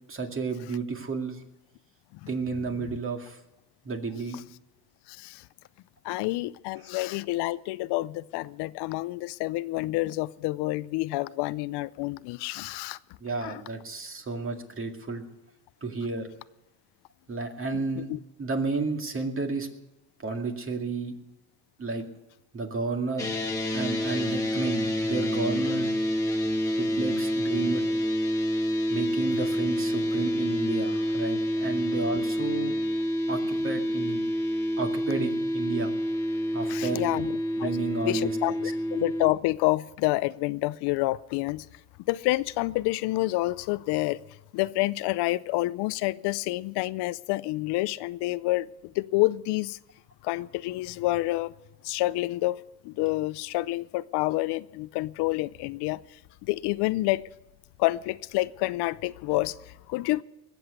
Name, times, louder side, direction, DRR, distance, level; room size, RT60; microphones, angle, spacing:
voice 1, 0.1-1.4 2.3-3.4 3.8-4.4 13.2-15.2 15.8-16.3 17.3-18.1 18.4-19.7 20.2-21.1 21.8-22.0 22.5-23.3 23.7-25.9 26.8-27.8 28.9-32.8 33.3-34.2 34.8-35.9 36.5-37.0 37.5-38.6, right 3 dB, 30° right, 2.2 m, -32 dB
voice 2, 5.1-5.5 6.0-13.0 13.4-13.6 18.1-18.2 36.7-37.7 38.0-41.7 42.1-44.2 44.5-49.8 50.2-51.5 51.8-57.2 57.8-60.2, left 19 dB, 75° left, 0.6 m, -28 dB
sound 1, 23.2-39.3, equal, 10° left, 1.9 m, -28 dB
20.0 x 7.8 x 8.2 m
cardioid pair, 105°, 40 cm